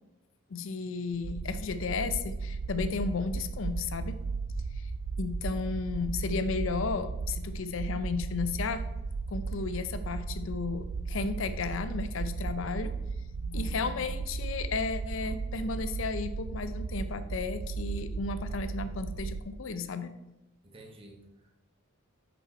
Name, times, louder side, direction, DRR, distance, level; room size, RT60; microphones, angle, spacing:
voice 1, 0.5-4.2 4.7-4.9 5.2-8.8 9.3-12.9 13.3-20.1, left 4 dB, 70° left, 11 dB, 0.5 m, -34 dB
sound 1, 1.1-19.4, right 4 dB, 75° right, 0.4 m, -35 dB
voice 2, 20.6-21.5, right 2 dB, 25° right, 2 dB, 1.1 m, -52 dB
6.2 x 5.4 x 4.3 m, 0.98 s
head